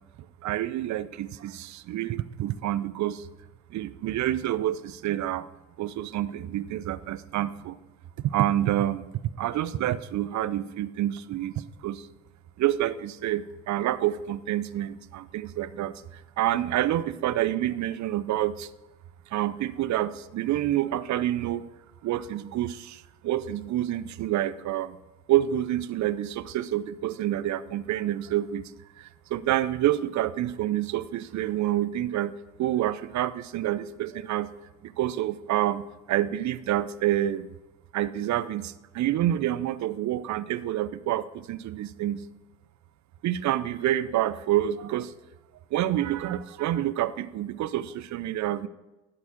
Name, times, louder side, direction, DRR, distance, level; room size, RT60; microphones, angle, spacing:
voice 1, 0.4-3.3 3.7-5.5 5.8-7.8 8.2-9.1 9.4-12.1 12.6-18.7 19.3-21.6 22.0-25.0 25.3-28.7 29.0-32.3 32.6-34.5 34.8-37.5 37.9-42.2 43.2-45.1 45.7-48.7, right 13 dB, 50° right, 15 dB, 0.6 m, -28 dB
11.5 x 4.6 x 6.1 m, 1.0 s
hypercardioid pair, 45°, 36 cm